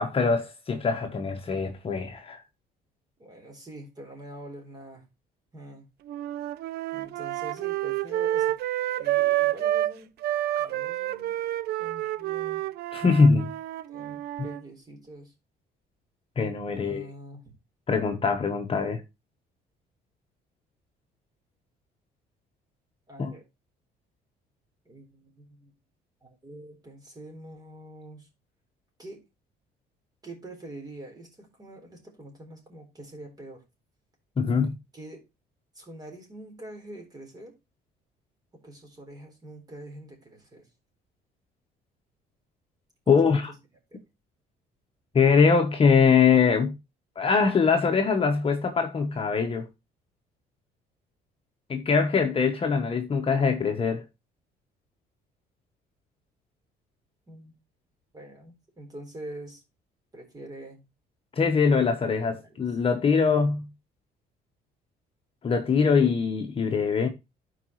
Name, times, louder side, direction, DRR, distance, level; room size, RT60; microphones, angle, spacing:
voice 1, 0.0-2.4 12.9-13.5 16.4-17.1 17.9-19.0 23.2-23.3 34.4-34.7 43.1-43.5 45.1-46.7 47.2-49.7 51.7-54.0 61.4-63.7 65.4-67.1, left 5 dB, 35° left, 1.2 m, -22 dB
voice 2, 3.2-5.0 5.5-5.9 6.9-8.6 9.0-10.1 10.6-11.4 11.8-12.6 13.9-15.3 16.7-17.4 23.1-23.4 24.9-25.7 26.2-28.3 29.0-29.2 30.2-33.6 34.9-35.2 35.7-37.5 38.5-40.7 43.1-43.4 43.9-44.0 57.3-57.5 58.1-59.6 60.1-60.8 62.1-62.5, right 1 dB, 25° right, 4.0 m, -45 dB
sound 1, 6.1-9.9 10.2-14.6, right 14 dB, 70° right, 0.5 m, -29 dB
12.0 x 4.9 x 3.1 m
cardioid pair, 110°, 17 cm